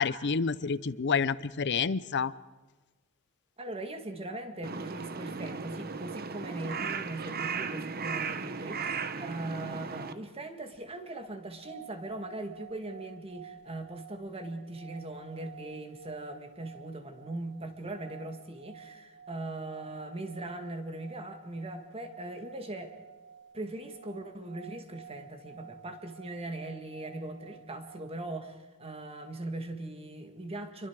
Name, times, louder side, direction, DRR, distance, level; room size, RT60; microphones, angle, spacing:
voice 1, 0.0-2.3, left 5 dB, 55° left, 18 dB, 0.6 m, -28 dB
voice 2, 3.6-22.9 23.5-30.9, right 2 dB, 25° right, 6 dB, 2.0 m, -40 dB
Crow, 4.6-10.1, right 5 dB, 45° right, 1.0 m, -36 dB
sound 1, 11.3-28.5, right 8 dB, 80° right, 3.0 m, -52 dB
27.5 x 23.0 x 4.8 m, 1.2 s
head